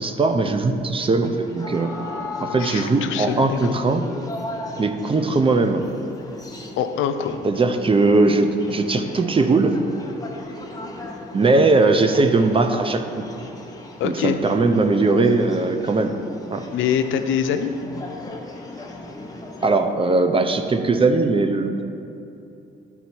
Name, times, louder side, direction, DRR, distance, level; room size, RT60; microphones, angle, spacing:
voice 1, 0.0-1.9 2.4-4.0 4.8-5.8 7.4-9.8 11.3-13.1 14.0-16.2 16.5-16.6 19.6-21.8, right 3 dB, 25° right, 7 dB, 0.6 m, -19 dB
sound 1, 1.2-19.8, left 2 dB, 20° left, 1.0 m, -37 dB
voice 2, 2.6-3.8 6.8-7.4 14.0-14.4 16.7-17.7, left 8 dB, 85° left, 8 dB, 0.5 m, -24 dB
11.0 x 4.1 x 4.4 m, 2.7 s
cardioid pair, 90°, 20 cm